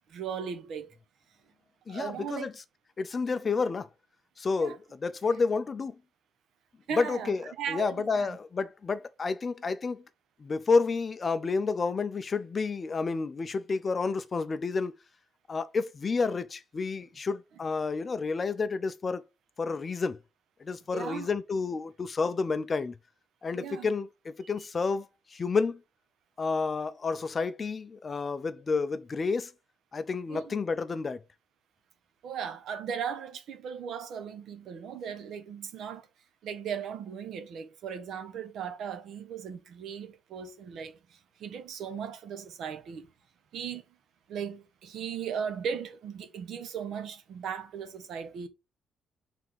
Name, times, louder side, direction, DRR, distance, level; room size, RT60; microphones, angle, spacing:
voice 1, 0.1-1.0 1.9-2.5 4.6-4.8 6.9-8.4 20.9-21.3 23.5-23.9 30.3-30.5 32.2-36.1 36.4-43.1 43.5-43.8 44.3-48.5, right 7 dB, 70° right, 1.1 m, -37 dB
voice 2, 1.9-2.5 3.0-3.9 4.4-6.0 6.9-10.0 10.4-14.9 15.5-19.2 19.6-20.2 20.6-22.9 23.4-25.1 25.3-25.8 26.4-29.5 29.9-31.2, left 4 dB, 30° left, 0.5 m, -30 dB
6.0 x 3.5 x 4.7 m
cardioid pair, 145°, 0 cm